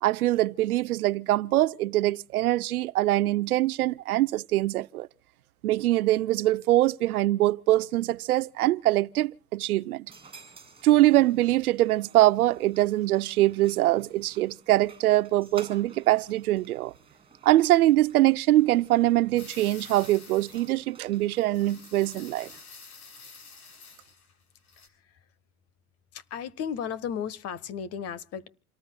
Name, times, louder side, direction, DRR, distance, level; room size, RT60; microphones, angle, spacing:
voice 1, 0.0-5.1 5.6-10.1 10.8-16.9 17.4-22.5, right 16 dB, 85° right, 0.7 m, -23 dB
sound 1, 10.1-22.6, right 5 dB, 10° right, 7.7 m, -53 dB
sound 2, 19.4-20.8 21.1-24.3 24.6-24.9, left 5 dB, 85° left, 6.8 m, -49 dB
voice 2, 26.1-28.5, left 8 dB, 35° left, 1.3 m, -34 dB
29.0 x 18.5 x 2.3 m
hypercardioid pair, 115°, 43 cm